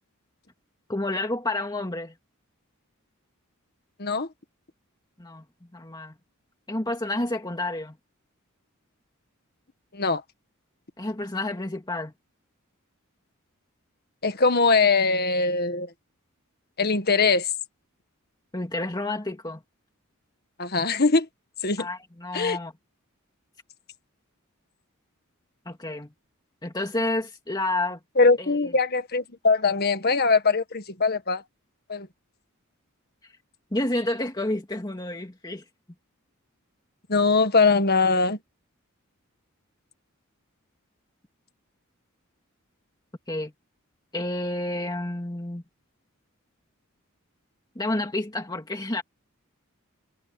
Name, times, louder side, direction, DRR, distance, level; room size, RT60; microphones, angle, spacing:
voice 1, 0.9-2.1 5.2-5.4 5.7-6.1 6.7-8.0 11.0-12.1 18.5-19.6 21.8-22.7 25.7-26.1 26.6-28.0 28.4-28.7 33.7-35.6 43.3-43.5 44.1-45.6 47.8-49.0, left 2 dB, 20° left, 2.2 m, -29 dB
voice 2, 14.2-15.9 16.8-17.5 20.6-21.3 21.6-21.9 22.3-22.6 28.2-31.4 31.9-32.1 37.1-38.4, left 4 dB, 45° left, 1.8 m, -21 dB
head